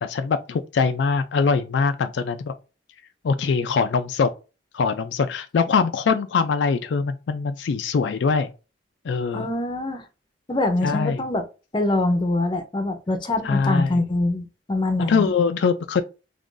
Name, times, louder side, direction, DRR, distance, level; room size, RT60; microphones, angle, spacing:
voice 1, 0.0-2.5 3.2-4.3 4.7-8.5 9.0-9.5 10.8-11.2 13.4-14.0 15.0-16.0, left 5 dB, 75° left, 0.4 m, -22 dB
voice 2, 9.3-10.0 10.5-11.4 11.7-15.3, left 2 dB, 25° left, 0.6 m, -24 dB
3.5 x 2.5 x 3.7 m
head